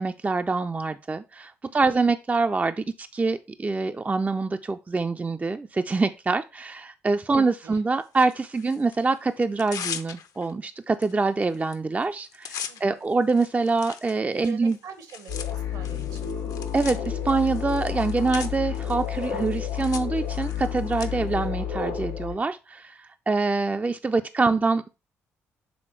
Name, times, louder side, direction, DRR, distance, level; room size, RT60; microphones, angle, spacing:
voice 1, 0.0-14.8 16.7-24.9, right 3 dB, 20° right, 9 dB, 0.4 m, -25 dB
voice 2, 1.6-2.0 7.3-7.8 12.7-13.1 14.4-16.3 24.5-24.6, right 7 dB, 65° right, 9 dB, 1.2 m, -45 dB
Tearing, 8.1-9.0 9.4-10.5 11.0-11.1 11.4-11.7 12.0-21.1, left 7 dB, 60° left, 0.7 m, -40 dB
sound 1, 15.3-22.4, left 8 dB, 80° left, 1.5 m, -30 dB
6.3 x 3.7 x 4.4 m, 0.29 s
hypercardioid pair, 45°, 7 cm